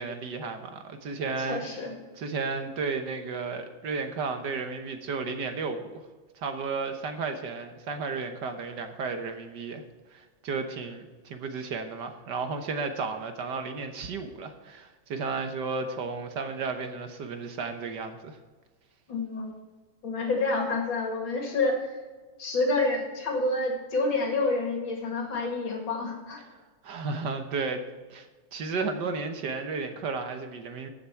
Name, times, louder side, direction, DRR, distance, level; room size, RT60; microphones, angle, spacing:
voice 1, 0.0-1.6 2.2-6.0 6.3-9.8 10.1-18.4 26.8-27.8 28.1-30.9, right 4 dB, 65° right, 6 dB, 1.6 m, -33 dB
voice 2, 1.5-2.0 19.1-19.5 20.0-21.8 22.4-26.4, left 2 dB, 75° left, 1 dB, 2.9 m, -28 dB
15.0 x 7.0 x 4.6 m, 1.3 s
omnidirectional pair, 2.1 m